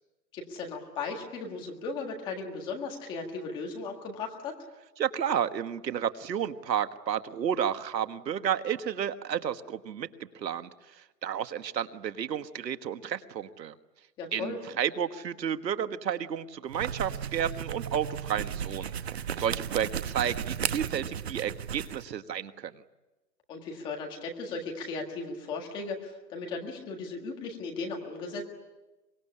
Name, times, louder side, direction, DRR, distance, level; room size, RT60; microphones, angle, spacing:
voice 1, 0.3-4.6 14.2-14.6 23.5-28.5, left 4 dB, 10° left, 1 dB, 1.7 m, -36 dB
voice 2, 5.0-10.1 10.3-10.7 11.2-13.7 14.3-18.9 19.4-22.8, right 9 dB, 85° right, 10 dB, 1.6 m, -31 dB
sound 1, 16.7-22.0, right 8 dB, 40° right, 0.9 m, -35 dB
24.5 x 22.0 x 9.9 m, 1.1 s
hypercardioid pair, 180°, 49 cm